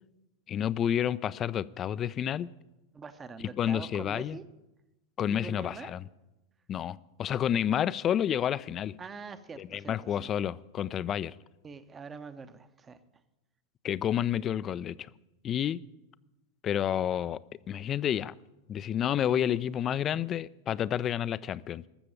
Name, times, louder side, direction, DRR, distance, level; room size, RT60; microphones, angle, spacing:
voice 1, 0.5-2.5 3.6-4.4 5.2-6.1 6.7-8.9 9.6-11.3 13.8-15.1 15.4-15.8 16.6-17.4 17.7-18.3 18.7-21.9, left 10 dB, 30° left, 0.4 m, -30 dB
voice 2, 2.9-4.5 5.2-5.9 9.0-10.3 11.6-13.0, right 5 dB, 20° right, 0.8 m, -44 dB
14.0 x 6.9 x 8.8 m
figure-of-eight pair, 90°, 0 cm